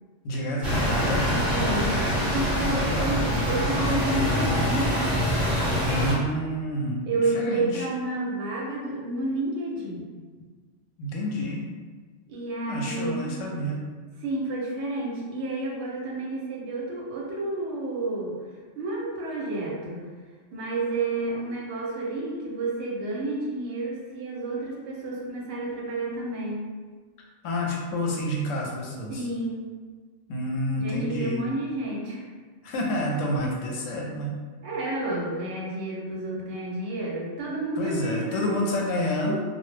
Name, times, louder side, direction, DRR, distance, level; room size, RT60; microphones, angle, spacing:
voice 1, 0.2-1.4 2.5-3.2 5.8-7.9 11.0-11.7 12.7-13.8 27.4-29.2 30.3-31.4 32.6-34.4 37.8-39.4, equal, 85° left, -1 dB, 0.9 m, -29 dB
sound 1, 0.6-6.1, equal, 30° right, 0.9 m, -24 dB
voice 2, 1.5-2.0 2.3-4.9 7.1-10.1 12.3-13.5 14.2-18.4 18.8-20.1 20.5-26.7 29.1-29.6 30.8-32.3 34.6-38.6 39.3-39.4, right 2 dB, 70° right, -2 dB, 0.8 m, -30 dB
2.3 x 2.0 x 3.1 m, 1.4 s
omnidirectional pair, 1.3 m